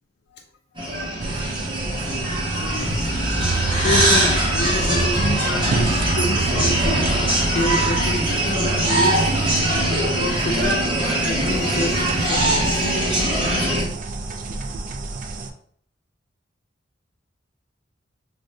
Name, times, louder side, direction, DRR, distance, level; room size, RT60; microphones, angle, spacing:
sound 1, 0.8-13.8, right 1 dB, 25° right, 0.8 m, -22 dB
sound 2, 1.2-15.5, right 3 dB, 45° right, 0.3 m, -30 dB
voice 1, 2.5-2.9 3.2-3.5 3.8-13.2, left 2 dB, 60° left, 1 dB, 0.4 m, -29 dB
sound 3, 2.9-8.2, right 2 dB, 5° left, 0.8 m, -27 dB
3.6 x 2.1 x 2.6 m, 0.63 s
head